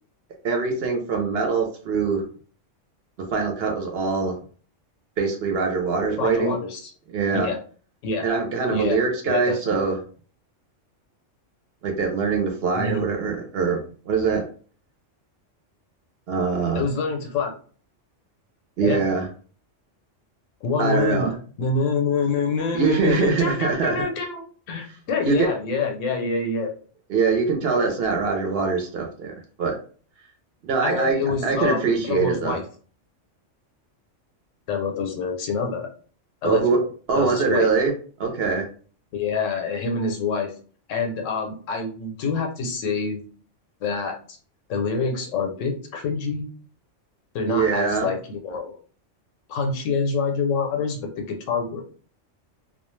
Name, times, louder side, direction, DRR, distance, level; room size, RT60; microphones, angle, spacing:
voice 1, 0.4-2.2 3.3-4.4 5.2-6.5 7.1-7.5 8.2-9.9 11.8-13.8 14.1-14.4 16.3-16.8 18.8-19.3 20.8-21.3 22.7-24.0 25.2-25.5 27.1-29.8 30.7-32.6 36.4-36.8 37.1-37.9 38.2-38.6 47.5-48.1, right 5 dB, 60° right, 3 dB, 0.7 m, -23 dB
voice 2, 6.2-6.9 7.3-7.6 8.0-8.2 8.7-9.0 9.2-9.8 12.7-13.1 16.7-17.5 18.8-19.0 20.6-26.7 30.8-32.6 34.7-35.9 36.4-36.8 37.1-37.7 39.1-40.5 40.9-43.2 43.8-44.2 44.7-46.5 47.3-48.8 49.5-51.8, left 4 dB, 85° left, 3 dB, 1.0 m, -26 dB
2.3 x 2.1 x 3.1 m, 0.41 s
omnidirectional pair, 1.3 m